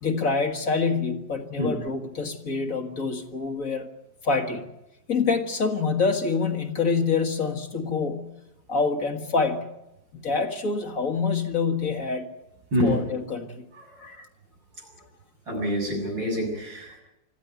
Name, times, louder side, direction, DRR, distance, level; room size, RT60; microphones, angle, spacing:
voice 1, 0.0-3.9 4.2-4.7 5.1-8.3 8.7-9.7 10.1-12.3 12.8-13.6 14.0-14.3, left 4 dB, 45° left, 5 dB, 2.0 m, -26 dB
voice 2, 15.5-17.0, equal, 85° right, 1 dB, 7.8 m, -26 dB
25.5 x 14.5 x 9.5 m, 0.91 s
omnidirectional pair, 2.0 m